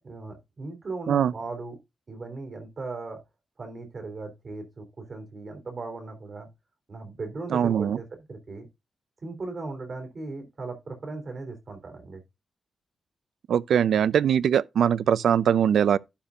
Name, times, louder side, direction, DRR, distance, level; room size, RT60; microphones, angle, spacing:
voice 1, 0.0-1.8 2.1-3.2 3.6-6.5 6.9-8.7 9.2-12.2, right 3 dB, 40° right, 3.4 m, -37 dB
voice 2, 7.5-8.0 13.5-16.0, right 8 dB, 80° right, 0.4 m, -22 dB
11.5 x 6.9 x 2.4 m
wide cardioid pair, 150°, 0 cm